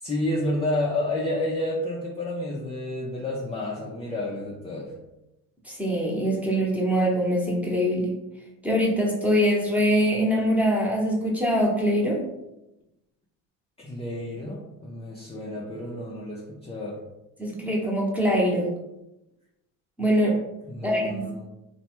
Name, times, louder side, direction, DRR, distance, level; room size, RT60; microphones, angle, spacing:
voice 1, 0.0-4.9 13.8-17.0 20.7-21.4, left 1 dB, 15° left, -3 dB, 0.4 m, -30 dB
voice 2, 5.6-8.1 8.6-12.2 17.4-18.7 20.0-20.4 20.8-21.3, equal, 5° right, -3 dB, 0.9 m, -23 dB
3.0 x 2.2 x 2.9 m, 0.92 s
hypercardioid pair, 80°, 41 cm